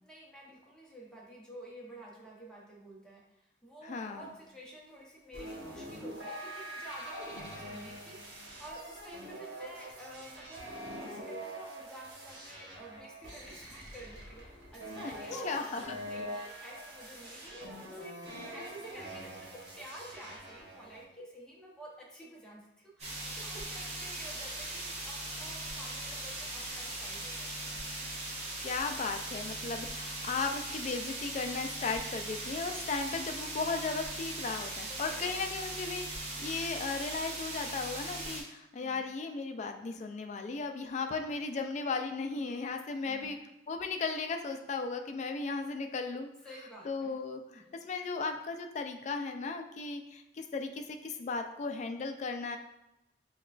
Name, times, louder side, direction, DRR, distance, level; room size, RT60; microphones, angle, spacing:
voice 1, 0.0-27.8 34.8-35.5 38.7-39.1 42.3-42.7 43.1-43.4 46.4-47.2 47.4-47.7, right 1 dB, 5° left, -4 dB, 0.8 m, -50 dB
voice 2, 3.8-4.3 15.0-15.1 15.4-16.0 28.6-43.4 43.7-46.3 46.8-52.6, left 4 dB, 40° left, 5 dB, 0.3 m, -36 dB
sound 1, 5.3-21.0, equal, 65° right, 1.0 m, -44 dB
sound 2, 23.0-38.4, right 2 dB, 40° right, 0.9 m, -39 dB
5.7 x 2.3 x 2.4 m, 0.90 s
head